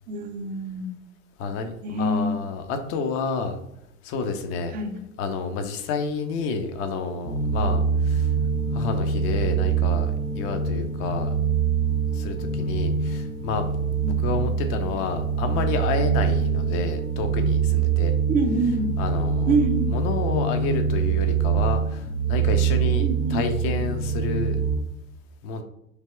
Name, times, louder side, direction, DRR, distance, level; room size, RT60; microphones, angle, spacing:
voice 1, 0.1-1.0 1.8-2.4 4.7-5.0 14.0-14.2 18.3-18.9 19.5-19.9 23.0-23.4, right 2 dB, 20° right, 5 dB, 0.5 m, -25 dB
voice 2, 1.4-3.6 4.0-4.7 5.2-8.3 8.7-11.3 12.1-13.7 14.2-18.1 19.0-19.5 19.9-24.6 25.4-25.6, left 4 dB, 30° left, 7 dB, 0.6 m, -29 dB
sound 1, 7.2-24.7, right 6 dB, 90° left, 1.3 m, -24 dB
3.3 x 2.8 x 4.3 m, 0.80 s
figure-of-eight pair, 80°, 42 cm